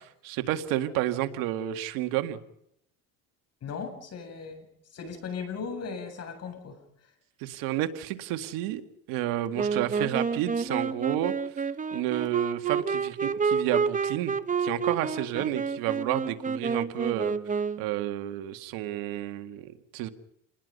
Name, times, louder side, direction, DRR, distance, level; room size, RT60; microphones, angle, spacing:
voice 1, 0.2-2.4 7.4-8.8 9.1-11.3 11.9-17.3 17.8-20.1, right 13 dB, 85° right, 9 dB, 2.1 m, -31 dB
voice 2, 3.6-4.6 4.9-6.8 15.3-15.5, left 5 dB, 50° left, 7 dB, 7.8 m, -37 dB
Wind instrument woodwind instrument, 9.6-18.0, right 5 dB, 25° right, 1.1 m, -29 dB
29.0 x 20.0 x 5.5 m, 0.73 s
cardioid pair, 100°, 33 cm